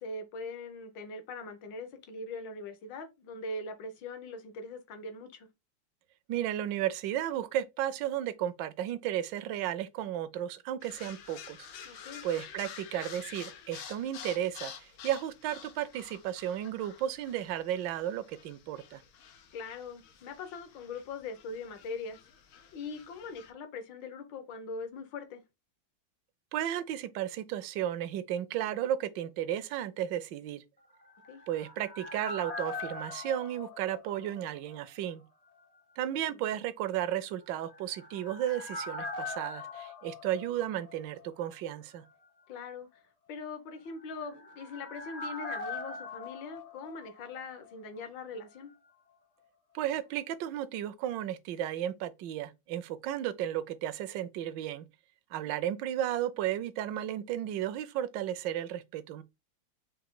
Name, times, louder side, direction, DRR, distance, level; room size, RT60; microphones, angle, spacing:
voice 1, 0.0-5.5 11.8-12.2 19.5-22.2 22.7-25.4 31.3-31.4 36.0-36.4 42.5-43.0 43.3-48.7 55.4-55.5, left 3 dB, 70° left, 1.6 m, -42 dB
voice 2, 6.3-19.0 26.5-30.6 31.5-35.2 36.0-42.0 49.7-54.9 55.3-59.2, right 11 dB, 75° right, 1.2 m, -34 dB
sound 1, 10.8-23.5, left 8 dB, 90° left, 1.5 m, -49 dB
sound 2, 30.9-34.8 35.0-35.1 37.5-41.3 41.5-41.6 43.9-47.7 48.0-48.1, left 3 dB, 55° left, 0.4 m, -42 dB
4.8 x 2.8 x 3.7 m
omnidirectional pair, 2.1 m